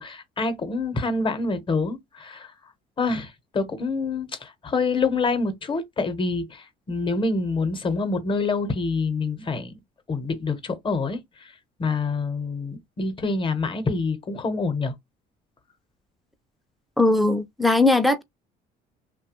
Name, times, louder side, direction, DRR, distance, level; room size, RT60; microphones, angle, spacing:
voice 1, 0.0-2.5 3.0-9.8 10.1-11.5 11.8-14.9, left 3 dB, 30° left, 0.8 m, -26 dB
voice 2, 17.0-18.2, left 2 dB, ahead, 0.4 m, -19 dB
2.9 x 2.2 x 2.8 m
cardioid pair, 110°, 17 cm